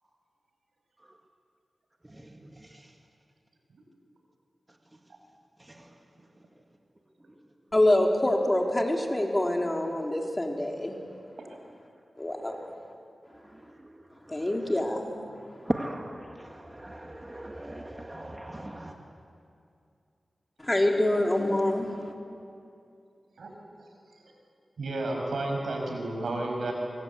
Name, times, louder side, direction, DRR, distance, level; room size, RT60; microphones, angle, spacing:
voice 1, 7.7-10.9 12.2-12.6 14.3-15.1 20.6-22.1, left 1 dB, 25° left, 1 dB, 3.6 m, -25 dB
voice 2, 15.7-18.9, right 1 dB, 20° right, 2 dB, 2.0 m, -36 dB
voice 3, 24.8-26.7, right 2 dB, 85° right, 1 dB, 5.8 m, -31 dB
24.5 x 24.0 x 8.2 m, 2.5 s
cardioid pair, 60°, 0 cm